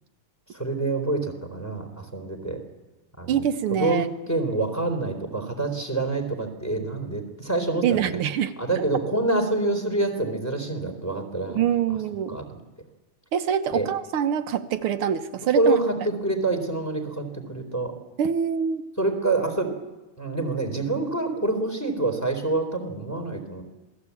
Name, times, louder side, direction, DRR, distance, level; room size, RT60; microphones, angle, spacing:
voice 1, 0.5-2.6 3.2-8.2 8.6-11.6 12.3-12.6 13.7-13.9 15.5-17.9 19.0-19.7 20.2-23.6, right 2 dB, 5° left, 4 dB, 3.6 m, -26 dB
voice 2, 3.3-4.1 7.8-8.6 11.6-12.4 13.3-15.8 18.2-18.8, right 8 dB, 85° right, 8 dB, 1.9 m, -25 dB
27.0 x 18.5 x 8.4 m, 1.1 s
omnidirectional pair, 2.3 m